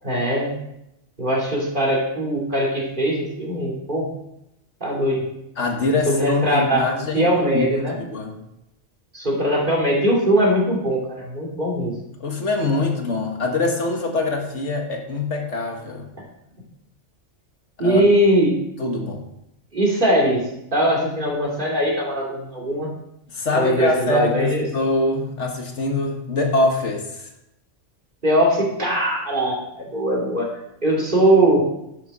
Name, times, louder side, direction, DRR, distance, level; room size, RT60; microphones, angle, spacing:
voice 1, 0.0-0.6 1.2-4.1 4.8-5.2 6.0-6.9 7.1-8.0 9.1-12.0 17.8-18.6 19.7-22.9 23.5-24.6 28.2-30.5 30.8-31.7, right 1 dB, 40° right, -3 dB, 2.9 m, -20 dB
voice 2, 5.6-7.7 8.0-8.3 12.2-16.1 17.8-18.0 18.8-19.3 23.3-27.3, left 2 dB, 75° left, 2 dB, 1.9 m, -24 dB
10.5 x 7.7 x 5.4 m, 0.83 s
omnidirectional pair, 1.2 m